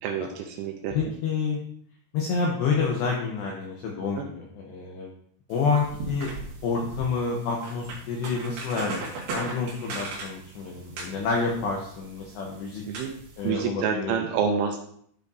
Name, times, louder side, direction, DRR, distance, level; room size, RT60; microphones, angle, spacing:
voice 1, 0.0-1.1 4.2-4.3 12.9-13.1 13.4-14.8, right 6 dB, 80° right, 3 dB, 2.9 m, -28 dB
voice 2, 0.9-1.6 2.1-5.1 5.5-6.3 6.6-12.8 13.4-14.2, left 5 dB, 80° left, -1 dB, 2.6 m, -28 dB
sound 1, 5.5-13.5, right 3 dB, 60° right, 2.6 m, -39 dB
12.5 x 5.1 x 2.6 m, 0.64 s
omnidirectional pair, 5.9 m